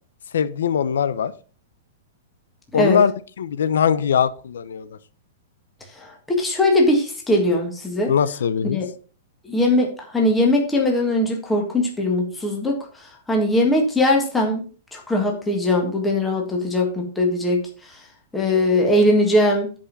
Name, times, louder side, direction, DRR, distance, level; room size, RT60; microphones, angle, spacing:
voice 1, 0.3-1.3 2.7-3.1 3.4-5.0 8.1-8.8, left 7 dB, 85° left, 0.7 m, -21 dB
voice 2, 6.0-8.1 8.7-8.9 9.4-12.8 13.3-14.6 14.9-17.6 18.3-19.7, left 1 dB, 5° left, 1.7 m, -20 dB
10.5 x 5.2 x 5.3 m
supercardioid pair, 170°, 0 cm